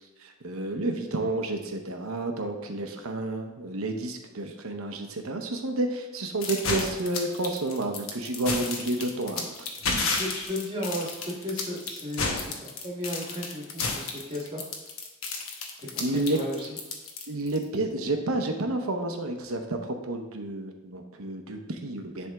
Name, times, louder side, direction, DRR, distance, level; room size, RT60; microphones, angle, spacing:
voice 1, 0.0-9.7 16.0-16.4 17.3-22.3, right 2 dB, 85° right, 5 dB, 0.8 m, -30 dB
sound 1, 6.4-17.6, left 4 dB, 75° left, 1.0 m, -31 dB
voice 2, 9.9-14.6 15.9-16.7, left 1 dB, 25° right, -2 dB, 1.4 m, -35 dB
10.5 x 3.5 x 3.5 m, 1.1 s
head